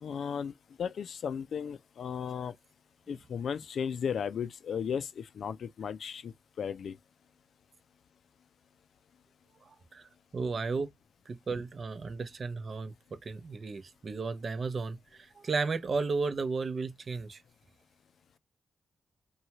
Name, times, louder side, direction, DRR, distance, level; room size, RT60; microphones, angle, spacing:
voice 1, 0.0-0.5 0.8-2.5 3.1-7.0, left 7 dB, 70° left, 0.4 m, -35 dB
voice 2, 9.9-10.9 11.3-12.9 13.2-17.4, right 4 dB, 50° right, 0.6 m, -34 dB
2.7 x 2.3 x 2.9 m
supercardioid pair, 55°, 0 cm